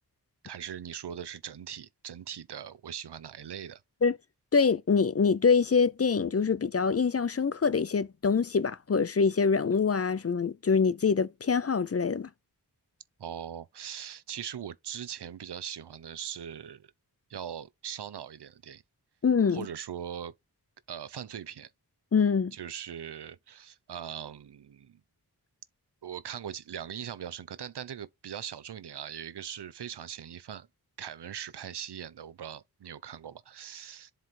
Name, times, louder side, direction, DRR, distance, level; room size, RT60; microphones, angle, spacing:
voice 1, 0.4-3.8 13.2-16.9 17.3-18.8 19.5-20.3 20.9-21.7 22.5-25.0 26.0-30.7 31.0-34.1, right 9 dB, 85° right, 0.7 m, -40 dB
voice 2, 4.5-12.3 19.2-19.7 22.1-22.5, left 5 dB, 40° left, 0.5 m, -25 dB
7.6 x 3.3 x 4.2 m
wide cardioid pair, 80°, 39 cm